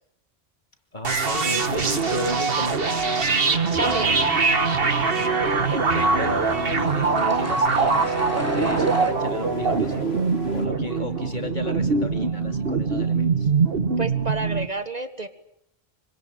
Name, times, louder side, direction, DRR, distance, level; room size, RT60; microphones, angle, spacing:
voice 1, 0.9-3.0 5.7-13.5, left 2 dB, 45° left, 5 dB, 3.1 m, -34 dB
sound 1, 1.0-14.7, right 4 dB, 65° right, 1.8 m, -23 dB
sound 2, 3.6-10.7, left 4 dB, 80° left, 2.3 m, -42 dB
sound 3, 3.7-9.1, right 2 dB, 15° right, 3.5 m, -31 dB
voice 2, 3.8-4.2 14.0-15.3, right 2 dB, 40° right, 9 dB, 1.7 m, -29 dB
26.5 x 25.0 x 9.0 m, 0.76 s
omnidirectional pair, 1.1 m